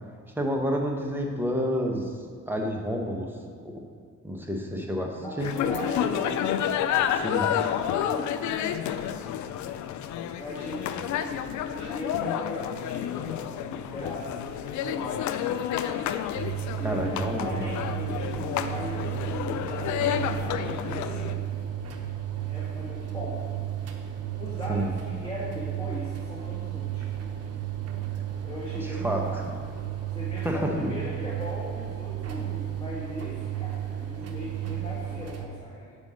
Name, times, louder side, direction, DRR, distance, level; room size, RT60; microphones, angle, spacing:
voice 1, 0.3-2.1 2.5-3.3 3.6-3.7 4.2-5.5 7.1-7.5 16.8-17.6 24.7-24.9 28.8-29.2 30.4-30.9, equal, 5° right, 1 dB, 1.1 m, -29 dB
voice 2, 5.2-6.5 7.8-9.8 10.3-15.6 16.7-21.5 22.4-23.4 24.3-27.3 28.4-29.4 30.1-36.0, left 1 dB, 15° left, -8 dB, 1.8 m, -38 dB
sound 1, 5.4-21.3, left 10 dB, 70° left, 0.4 m, -30 dB
sound 2, 16.3-35.5, right 11 dB, 55° right, 0.8 m, -33 dB
5.3 x 5.3 x 6.3 m, 2.1 s
cardioid pair, 90°, 30 cm